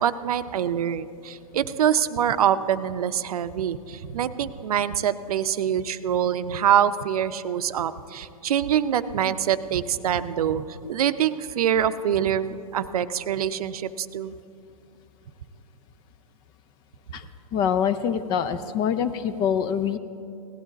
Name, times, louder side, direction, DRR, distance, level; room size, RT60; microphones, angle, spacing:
voice 1, 0.0-14.3, right 9 dB, 70° right, 13 dB, 0.6 m, -25 dB
voice 2, 17.5-20.0, left 8 dB, 25° left, 12 dB, 0.4 m, -25 dB
17.0 x 12.0 x 4.0 m, 2.6 s
hypercardioid pair, 140°, 19 cm